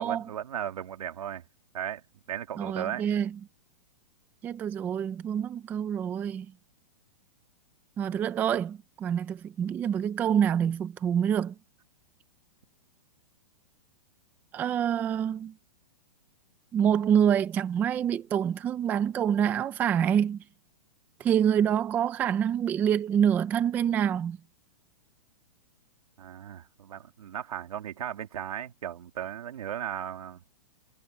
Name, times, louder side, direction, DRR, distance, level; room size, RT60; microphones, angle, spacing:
voice 1, 0.0-1.4 1.7-2.0 2.3-3.1 26.2-30.4, right 10 dB, 75° right, 2.9 m, -36 dB
voice 2, 2.6-3.3 4.4-6.5 8.0-11.5 14.5-15.5 16.7-20.4 21.2-24.4, right 9 dB, 10° right, 0.4 m, -26 dB
hypercardioid pair, 165°, 19 cm